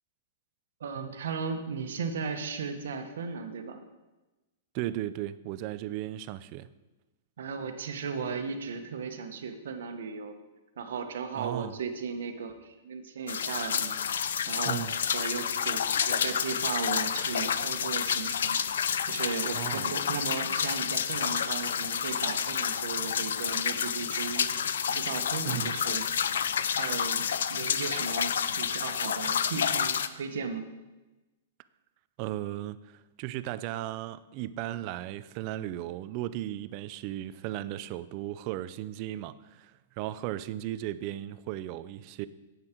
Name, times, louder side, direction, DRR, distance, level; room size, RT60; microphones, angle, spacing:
voice 1, 0.8-3.8 7.4-10.3 10.8-14.9 15.1-18.6 19.0-24.5 24.9-26.1 26.8-30.7, right 5 dB, 80° right, 1.2 m, -36 dB
voice 2, 4.7-6.7 11.4-11.8 14.6-15.0 19.5-19.9 25.5-25.8 32.2-42.3, right 13 dB, 35° right, 0.4 m, -36 dB
sound 1, 13.3-30.1, left 8 dB, 85° left, 0.5 m, -29 dB
9.8 x 8.2 x 4.5 m
hypercardioid pair, 160°, 0 cm